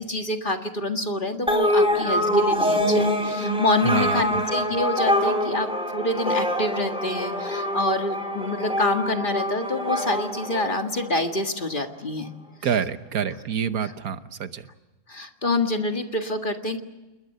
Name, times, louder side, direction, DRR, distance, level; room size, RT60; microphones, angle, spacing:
voice 1, 0.0-12.3 13.8-13.9 15.1-16.8, left 2 dB, 35° left, 5 dB, 1.9 m, -27 dB
sound 1, 1.5-11.3, equal, 5° right, 4.2 m, -25 dB
voice 2, 3.8-4.2 4.5-4.7 12.6-14.6, right 7 dB, 75° right, 10 dB, 1.5 m, -27 dB
29.0 x 21.0 x 6.7 m, 1.1 s
omnidirectional pair, 1.6 m